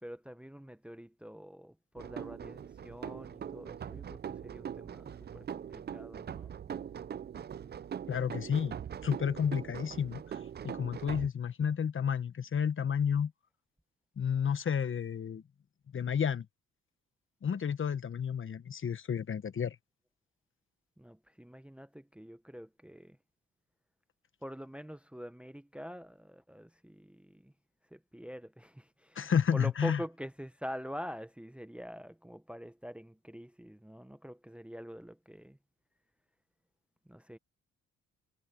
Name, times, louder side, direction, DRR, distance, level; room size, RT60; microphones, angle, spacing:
voice 1, 0.0-6.5 21.0-23.2 24.4-27.5 27.9-35.6 37.1-37.4, equal, 5° right, 0.9 m, -45 dB
sound 1, 2.0-11.3, right 8 dB, 35° right, 0.5 m, -42 dB
voice 2, 8.1-8.8 9.0-10.4 10.6-13.3 14.2-15.4 15.9-16.4 17.4-19.7 29.1-30.0, left 7 dB, 40° left, 1.3 m, -31 dB
cardioid pair, 90°, 30 cm